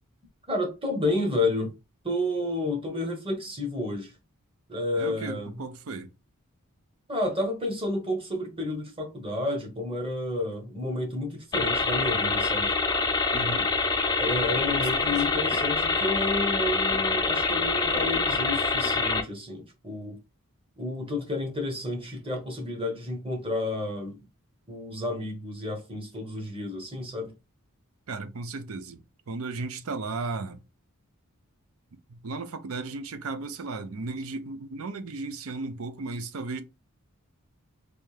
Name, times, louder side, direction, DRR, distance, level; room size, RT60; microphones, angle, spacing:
voice 1, 0.5-1.7 2.0-4.1 4.7-5.5 7.1-12.7 14.2-20.2 20.8-24.2 24.7-27.3, left 2 dB, 25° right, 1.1 m, -30 dB
voice 2, 5.0-6.1 13.3-13.7 14.5-15.3 28.1-29.0 29.3-30.6 32.1-36.6, right 3 dB, 70° right, 0.6 m, -35 dB
sound 1, 11.5-19.2, left 3 dB, 20° left, 0.4 m, -25 dB
3.4 x 2.7 x 3.2 m
head